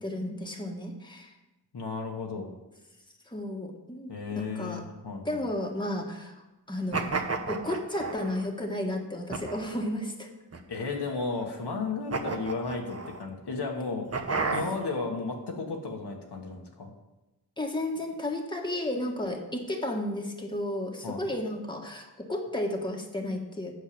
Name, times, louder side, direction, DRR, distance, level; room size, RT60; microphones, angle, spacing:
voice 1, 0.0-1.3 3.3-4.8 5.2-6.3 6.7-7.1 7.5-10.3 17.6-23.7, left 1 dB, 10° left, 1 dB, 1.5 m, -33 dB
voice 2, 1.7-2.5 4.1-5.4 10.7-14.1 14.5-16.9 21.0-21.4, left 4 dB, 85° left, 1 dB, 1.5 m, -34 dB
sound 1, 6.9-8.4 9.3-9.9 10.5-11.2 12.1-13.2 14.1-15.0, right 4 dB, 40° right, 1.0 m, -33 dB
8.2 x 6.5 x 6.9 m, 1.0 s
wide cardioid pair, 75°, 39 cm